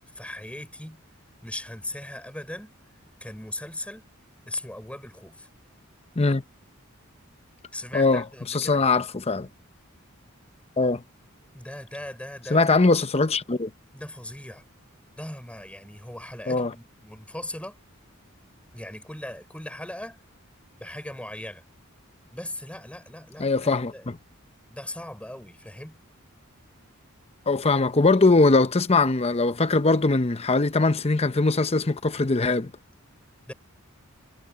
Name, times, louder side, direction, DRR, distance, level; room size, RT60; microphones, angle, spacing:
voice 1, 0.1-1.0 1.4-2.7 3.2-4.1 4.5-5.5 7.7-8.9 11.5-12.8 13.9-14.6 15.2-17.8 18.7-20.2 20.8-21.6 22.3-24.1 24.7-26.0 33.5-33.6, left 1 dB, 5° left, 6.1 m, -38 dB
voice 2, 7.9-9.5 10.8-11.0 12.5-13.7 16.5-16.7 23.4-24.2 27.5-32.7, left 3 dB, 30° left, 0.8 m, -21 dB
head